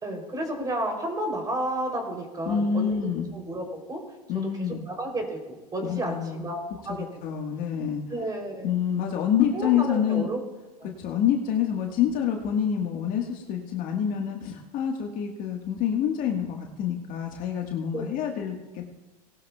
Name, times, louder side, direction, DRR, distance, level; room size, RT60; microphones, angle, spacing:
voice 1, 0.0-3.0 3.3-4.0 4.6-6.6 6.8-7.0 8.1-8.7 9.5-10.4 10.8-10.9 17.9-18.2, right 1 dB, 20° right, 2 dB, 3.3 m, -32 dB
voice 2, 2.5-3.3 4.3-4.8 5.8-6.4 6.9-8.2 8.6-10.3 11.0-18.9, left 8 dB, 45° left, 2 dB, 1.6 m, -27 dB
19.0 x 12.5 x 2.4 m, 1.1 s
hypercardioid pair, 95°, 20 cm